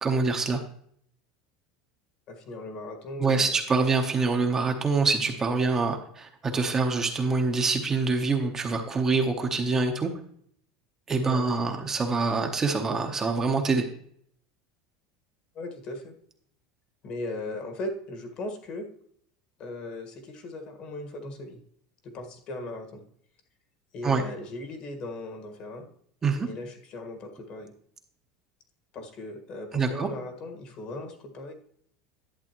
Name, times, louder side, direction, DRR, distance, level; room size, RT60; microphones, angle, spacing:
voice 1, 0.0-0.6 3.2-10.1 11.1-13.8 24.0-24.2 26.2-26.5 29.7-30.1, right 4 dB, 20° right, 3 dB, 0.9 m, -25 dB
voice 2, 2.3-3.6 11.2-11.5 15.5-16.1 17.0-18.9 19.6-21.6 22.0-23.0 23.9-25.9 26.4-27.7 28.9-31.5, left 2 dB, 40° left, 5 dB, 1.6 m, -38 dB
11.0 x 7.7 x 3.0 m, 0.65 s
supercardioid pair, 145°, 3 cm